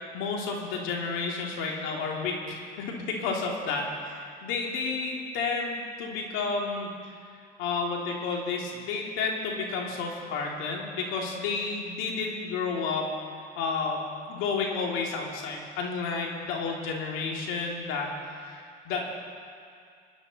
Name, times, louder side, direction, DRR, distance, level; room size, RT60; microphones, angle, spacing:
voice 1, 0.1-6.9 7.6-13.1 13.6-19.1, left 4 dB, 75° left, 0 dB, 2.5 m, -31 dB
25.5 x 9.8 x 4.1 m, 2.3 s
supercardioid pair, 95°, 21 cm